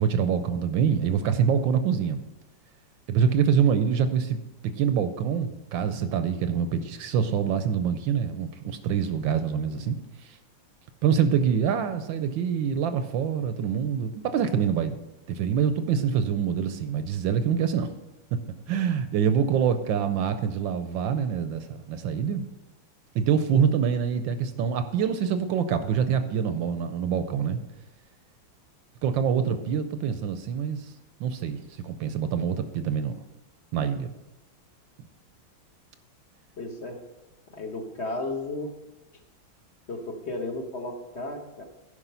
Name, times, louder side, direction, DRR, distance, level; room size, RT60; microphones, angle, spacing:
voice 1, 0.0-2.2 3.1-4.4 4.8-10.4 11.0-15.0 15.3-17.9 18.7-22.4 23.1-27.6 29.0-30.9 31.2-33.1 33.7-34.1, right 7 dB, 75° right, 10 dB, 1.2 m, -25 dB
voice 2, 36.6-37.0 37.5-38.7 39.9-41.6, left 2 dB, 45° left, 4 dB, 1.0 m, -34 dB
11.0 x 5.1 x 5.5 m, 0.99 s
omnidirectional pair, 2.3 m